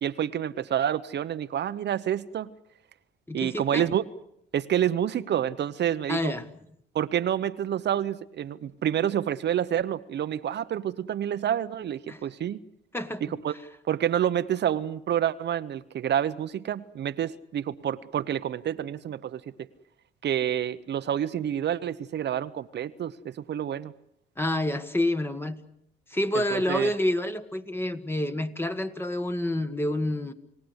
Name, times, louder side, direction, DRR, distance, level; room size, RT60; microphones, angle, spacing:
voice 1, 0.0-2.5 3.3-4.0 4.5-6.3 6.9-12.6 13.2-13.5 13.9-19.7 20.2-23.9 26.3-26.9, right 10 dB, 60° right, 11 dB, 0.9 m, -28 dB
voice 2, 3.3-3.9 6.1-6.5 12.1-12.2 12.9-13.2 24.4-25.6 26.1-30.3, left 1 dB, 10° left, 9 dB, 1.6 m, -28 dB
29.0 x 17.0 x 8.0 m, 0.75 s
cardioid pair, 90°, 20 cm